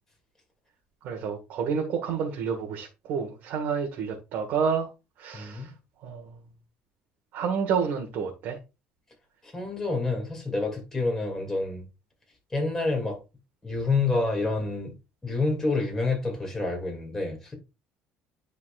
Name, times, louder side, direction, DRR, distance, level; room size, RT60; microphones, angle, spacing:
voice 1, 1.0-4.9 5.2-5.7 6.0-6.4 7.3-8.6, right 6 dB, 65° right, 1.4 m, -29 dB
voice 2, 5.3-5.7 9.4-11.8 12.5-13.2 13.6-14.9 15.2-17.5, left 3 dB, 15° left, 2.5 m, -28 dB
10.0 x 4.1 x 2.5 m
cardioid pair, 140°, 4 cm